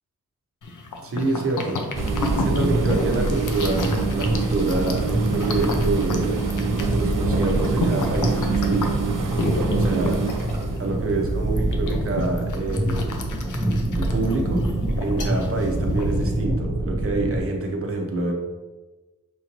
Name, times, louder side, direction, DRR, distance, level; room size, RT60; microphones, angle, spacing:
sound 1, 0.6-16.4, left 3 dB, 75° left, 0.6 m, -32 dB
voice 1, 1.0-2.1 2.3-6.4 6.9-9.0 9.7-10.2 10.8-13.1 13.9-14.6 15.0-18.3, right 2 dB, 45° right, 1 dB, 0.8 m, -27 dB
sound 2, 1.9-17.4, right 1 dB, 10° right, 0.7 m, -25 dB
sound 3, 1.9-12.1 12.8-13.1 13.5-13.7 14.5-15.0 15.3-15.4 16.3-16.4, right 7 dB, 85° right, 0.6 m, -29 dB
6.1 x 2.6 x 3.0 m, 1.2 s
wide cardioid pair, 130°, 31 cm